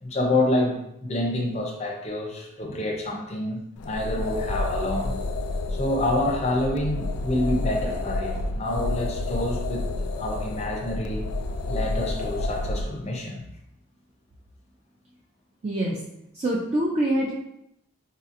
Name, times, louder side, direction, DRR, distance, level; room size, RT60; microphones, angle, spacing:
voice 1, 0.0-5.2 5.8-9.8 10.2-11.3 11.7-13.4, left 1 dB, 30° left, 0 dB, 0.5 m, -27 dB
sound 1, 3.8-12.9, left 2 dB, 85° left, 0.4 m, -30 dB
voice 2, 15.6-16.0 16.3-17.3, right 1 dB, 30° right, -3 dB, 0.3 m, -24 dB
3.9 x 2.7 x 2.5 m, 0.81 s
head